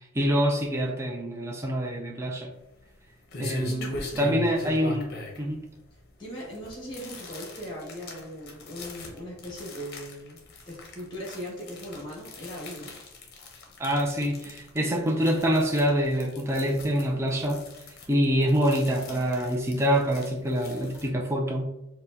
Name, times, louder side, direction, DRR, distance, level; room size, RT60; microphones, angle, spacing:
voice 1, 0.1-2.5 3.4-5.6 13.8-17.6 18.1-21.7, equal, 15° right, 1 dB, 0.4 m, -26 dB
sound 1, 2.5-21.1, left 1 dB, 50° left, 0.7 m, -41 dB
voice 2, 3.7-4.7 5.9-13.0, equal, 20° left, -3 dB, 1.1 m, -39 dB
4.3 x 2.2 x 2.6 m, 0.92 s
head